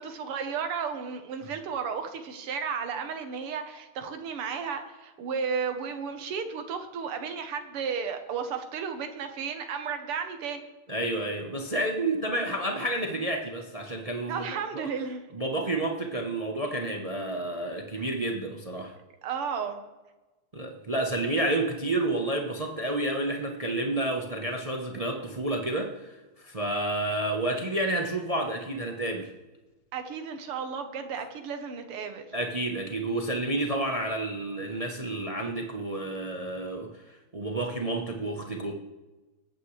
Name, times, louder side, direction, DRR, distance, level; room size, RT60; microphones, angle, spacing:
voice 1, 0.0-10.7 14.3-15.2 17.9-18.0 19.2-19.9 29.9-32.3, right 6 dB, 85° right, 7 dB, 2.1 m, -33 dB
voice 2, 10.9-14.5 14.7-14.9 15.3-18.9 20.5-26.1 26.4-29.3 32.3-38.8, right 1 dB, 40° right, 2 dB, 0.5 m, -30 dB
20.5 x 8.9 x 3.3 m, 1.1 s
omnidirectional pair, 2.4 m